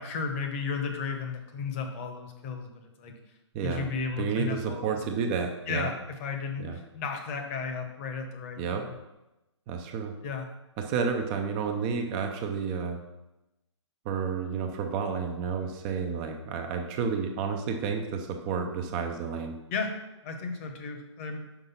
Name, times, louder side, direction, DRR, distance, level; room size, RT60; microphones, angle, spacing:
voice 1, 0.0-3.1 3.6-5.0 5.7-8.9 10.2-10.5 19.7-19.9 20.2-21.4, left 5 dB, 25° left, 4 dB, 1.0 m, -34 dB
voice 2, 3.5-3.9 4.2-5.9 6.6-6.8 8.6-8.9 9.7-10.1 10.8-13.0 14.0-19.5, right 5 dB, 20° right, 4 dB, 0.5 m, -31 dB
5.9 x 5.3 x 5.5 m, 0.97 s
figure-of-eight pair, 130°, 15 cm